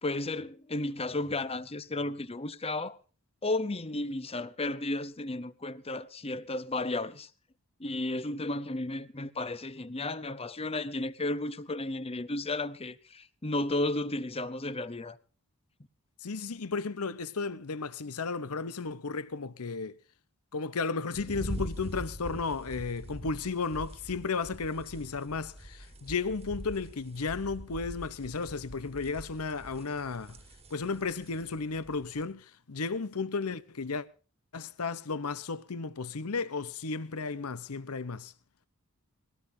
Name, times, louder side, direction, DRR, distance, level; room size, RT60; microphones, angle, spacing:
voice 1, 0.0-3.0 3.4-7.3 7.8-15.2, left 2 dB, 25° left, 0.9 m, -33 dB
voice 2, 16.2-20.0 20.5-30.4 30.7-34.1 34.5-38.3, left 4 dB, 70° left, 0.9 m, -34 dB
sound 1, 21.1-32.3, equal, 25° right, 1.7 m, -44 dB
21.5 x 17.0 x 2.7 m
head